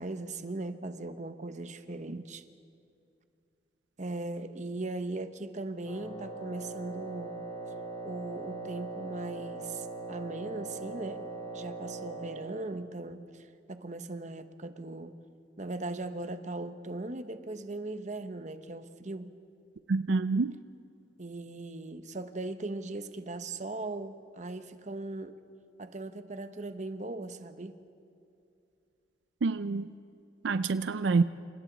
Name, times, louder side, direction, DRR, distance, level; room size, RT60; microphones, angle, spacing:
voice 1, 0.0-2.4 4.0-7.4 8.0-11.2 11.5-15.2 15.6-19.3 21.2-25.4 25.8-27.8, right 2 dB, 40° right, 1.0 m, -39 dB
Wind instrument woodwind instrument, 5.8-12.5, right 2 dB, 30° left, 7.2 m, -40 dB
voice 2, 19.9-20.5 29.4-29.9 30.4-31.2, right 4 dB, 80° right, 0.5 m, -27 dB
29.0 x 27.5 x 4.1 m
head